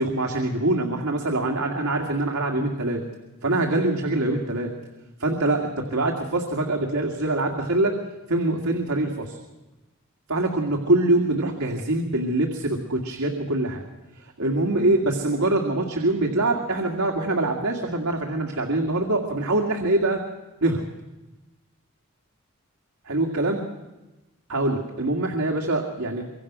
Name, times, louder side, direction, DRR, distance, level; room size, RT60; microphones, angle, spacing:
voice 1, 0.0-3.0 3.4-4.7 5.2-7.9 8.3-9.4 10.3-13.8 14.2-20.2 20.6-20.8 23.0-23.6 24.5-26.2, right 2 dB, 90° right, 1 dB, 2.3 m, -24 dB
24.5 x 23.0 x 6.2 m, 1.1 s
head